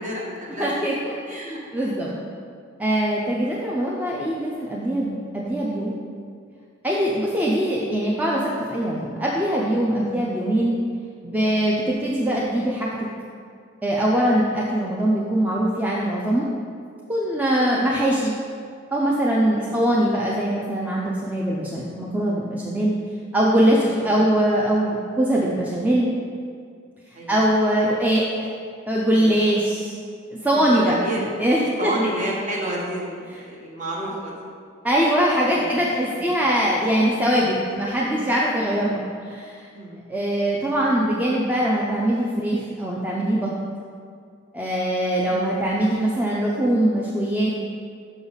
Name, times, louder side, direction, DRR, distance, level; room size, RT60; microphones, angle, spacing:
voice 1, 0.0-0.9 1.3-1.9 3.4-3.6 11.8-12.0 19.5-19.8 24.0-24.2 27.1-27.5 29.1-29.5 30.7-31.3 31.8-34.5 35.5-35.7 36.1-36.3 39.7-40.0 45.3-45.5, right 1 dB, 40° right, -4 dB, 1.2 m, -31 dB
voice 2, 0.6-1.1 1.7-2.1 2.8-6.0 6.8-8.4 8.7-10.8 11.2-12.9 13.8-16.5 17.1-18.3 18.9-23.0 23.3-26.1 27.3-28.2 28.9-30.0 30.4-30.9 31.4-31.9 34.8-39.6 40.1-43.5 44.5-47.5, right 1 dB, 10° right, -5 dB, 0.5 m, -22 dB
5.9 x 5.4 x 4.0 m, 2.2 s
head